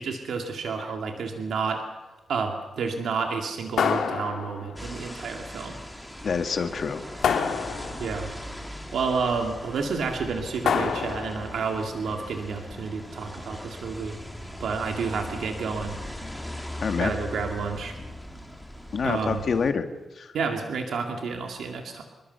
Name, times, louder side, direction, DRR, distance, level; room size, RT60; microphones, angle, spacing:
voice 1, 0.0-1.8 2.3-5.8 8.0-8.3 8.9-14.2 14.6-16.0 17.0-18.0 19.0-19.4 20.3-22.0, right 5 dB, 75° right, 3 dB, 2.4 m, -30 dB
sound 1, 3.8-4.8 7.2-8.2 10.6-11.5, left 6 dB, 80° left, 2.4 m, -26 dB
sound 2, 4.8-19.7, left 1 dB, 5° left, 2.2 m, -39 dB
voice 2, 6.2-7.0 16.8-17.1 18.9-19.8 20.1-20.3, left 5 dB, 45° left, 7 dB, 1.7 m, -26 dB
26.5 x 22.0 x 6.9 m, 1.1 s
wide cardioid pair, 170°, 0 cm